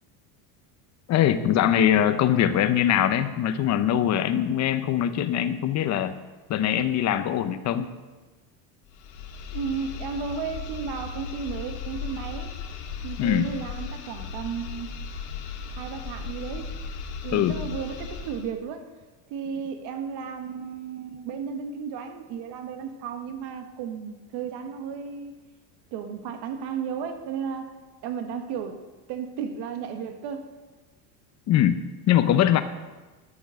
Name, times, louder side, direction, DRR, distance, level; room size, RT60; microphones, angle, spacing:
voice 1, 1.1-6.2 6.5-7.9 13.2-13.5 17.3-17.6 31.5-32.6, left 10 dB, 35° left, 11 dB, 0.8 m, -22 dB
sound 1, 8.9-18.5, left 5 dB, 80° left, 1.8 m, -36 dB
voice 2, 9.5-12.5 13.0-14.9 15.7-16.7 17.2-18.9 19.3-25.3 25.9-27.7 28.0-28.8 29.1-30.5, right 6 dB, 60° right, 7 dB, 1.4 m, -34 dB
12.0 x 7.0 x 6.4 m, 1.2 s
supercardioid pair, 135°, 45 cm